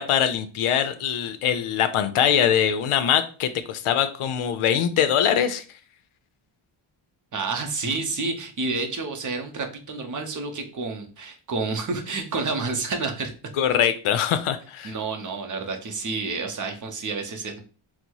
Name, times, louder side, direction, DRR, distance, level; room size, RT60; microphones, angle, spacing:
voice 1, 0.0-5.6 13.6-14.9, left 9 dB, 80° left, 10 dB, 0.6 m, -22 dB
voice 2, 7.3-13.3 14.8-17.6, right 3 dB, 40° right, 4 dB, 0.8 m, -29 dB
4.0 x 2.1 x 4.5 m, 0.38 s
wide cardioid pair, 145°, 49 cm